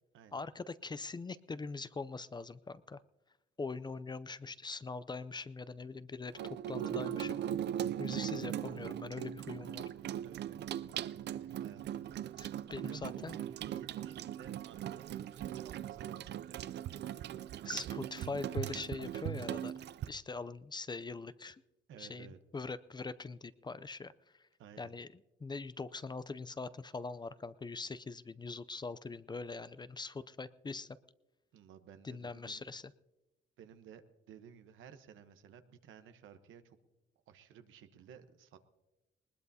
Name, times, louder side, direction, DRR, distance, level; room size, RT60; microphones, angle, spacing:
voice 1, 0.3-3.0 3.6-7.4 8.0-9.8 12.4-13.4 17.7-19.7 20.1-21.6 22.0-22.3 22.5-24.5 24.8-25.1 25.4-31.0 32.0-32.8, left 4 dB, 20° left, 16 dB, 0.5 m, -42 dB
Water tap faucet / Sink (filling or washing), 6.3-20.1, right 11 dB, 60° right, 0.4 m, -39 dB
voice 2, 10.2-12.5 12.8-16.6 17.6-17.9 18.4-18.7 21.9-22.4 24.6-24.9 31.5-32.6 33.6-34.0 34.3-36.8 37.3-38.6, right 8 dB, 80° right, 9 dB, 1.0 m, -55 dB
20.0 x 19.5 x 2.8 m, 1.0 s
cardioid pair, 90°, 20 cm